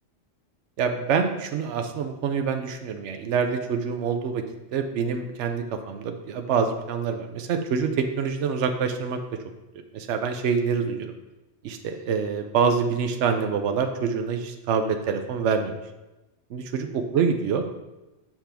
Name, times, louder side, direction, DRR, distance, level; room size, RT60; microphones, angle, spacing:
voice 1, 0.8-4.4 4.7-9.2 9.9-11.1 11.6-15.8 16.5-17.7, right 6 dB, 75° right, 6 dB, 0.9 m, -26 dB
7.5 x 5.9 x 3.4 m, 1.0 s
omnidirectional pair, 1.2 m